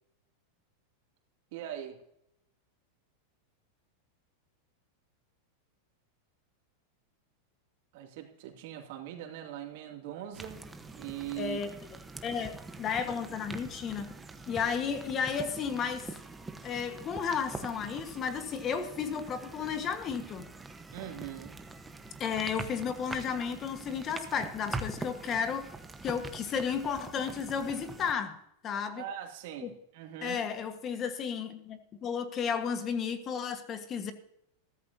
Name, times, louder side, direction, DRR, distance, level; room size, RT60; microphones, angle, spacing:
voice 1, 1.5-2.0 7.9-10.6 10.9-11.6 12.4-12.5 20.9-21.5 28.9-30.4, right 11 dB, 65° right, 2 dB, 2.5 m, -41 dB
sound 1, 10.3-28.1, right 3 dB, 10° right, 1.1 m, -44 dB
voice 2, 11.4-11.7 12.2-14.1 14.5-16.1 16.6-20.5 22.2-25.7 26.0-28.4 28.6-29.0 29.6-29.7 30.2-34.1, left 6 dB, 30° left, 9 dB, 1.4 m, -33 dB
14.5 x 13.5 x 2.8 m, 0.77 s
supercardioid pair, 130°, 0 cm